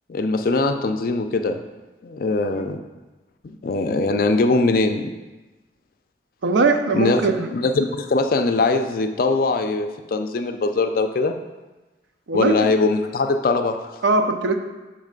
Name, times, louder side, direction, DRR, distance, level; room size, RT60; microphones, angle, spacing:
voice 1, 0.1-1.6 2.0-2.8 3.4-5.1 6.9-11.3 12.3-14.0, left 3 dB, 50° left, 7 dB, 0.4 m, -21 dB
voice 2, 6.4-7.5 12.3-12.5 14.0-14.6, right 3 dB, 90° right, 6 dB, 0.5 m, -20 dB
6.7 x 3.2 x 5.1 m, 1.2 s
head